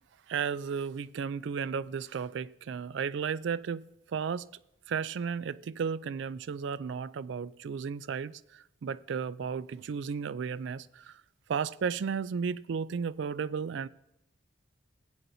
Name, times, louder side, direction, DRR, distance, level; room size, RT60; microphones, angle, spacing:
voice 1, 0.3-4.5 4.9-11.2 11.5-13.9, right 6 dB, 65° right, 0.3 m, -34 dB
16.0 x 9.0 x 2.7 m
head